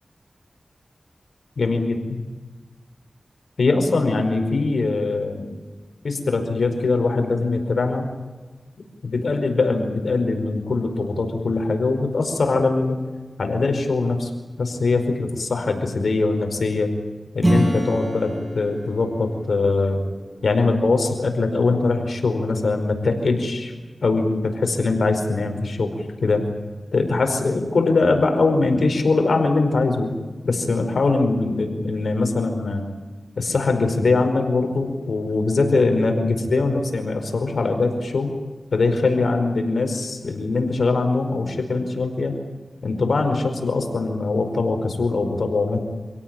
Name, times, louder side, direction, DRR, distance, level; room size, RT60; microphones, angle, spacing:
voice 1, 1.6-2.2 3.6-5.5 6.0-8.1 9.0-13.0 13.4-14.3 14.6-16.9 17.3-20.0 20.4-23.7 24.0-25.9 26.2-26.4 26.9-30.1 30.4-32.8 33.4-38.4 38.7-42.3 42.8-45.8, left 3 dB, 85° left, 5 dB, 4.9 m, -22 dB
Acoustic guitar / Strum, 17.4-21.7, equal, 20° right, 6.9 m, -27 dB
28.0 x 17.5 x 9.1 m, 1.3 s
cardioid pair, 50°, 0 cm